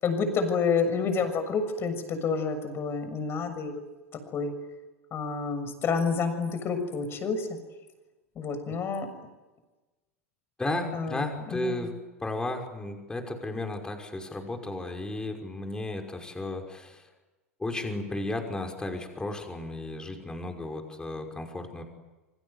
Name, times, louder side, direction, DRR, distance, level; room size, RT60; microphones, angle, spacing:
voice 1, 0.0-3.8 4.3-4.5 5.1-7.5 8.3-9.1 10.9-11.2 11.5-11.9, left 5 dB, 35° left, 9 dB, 6.8 m, -29 dB
voice 2, 10.6-11.9 12.2-17.0 17.6-21.8, left 2 dB, 10° left, 4 dB, 5.6 m, -34 dB
28.0 x 25.5 x 8.3 m, 1.1 s
figure-of-eight pair, 85°, 7 cm